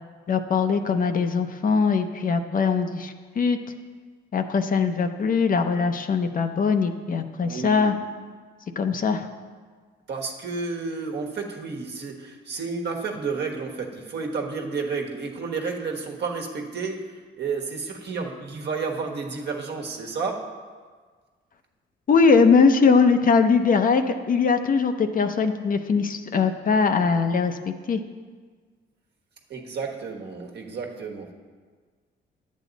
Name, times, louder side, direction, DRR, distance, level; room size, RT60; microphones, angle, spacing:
voice 1, 0.3-3.6 4.3-7.9 8.8-9.3 22.1-28.0, left 5 dB, 45° left, 7 dB, 0.7 m, -21 dB
voice 2, 7.4-8.0 10.1-20.5 29.5-31.3, right 4 dB, 60° right, 1 dB, 1.4 m, -31 dB
10.5 x 8.4 x 4.0 m, 1.5 s
cardioid pair, 90°, 20 cm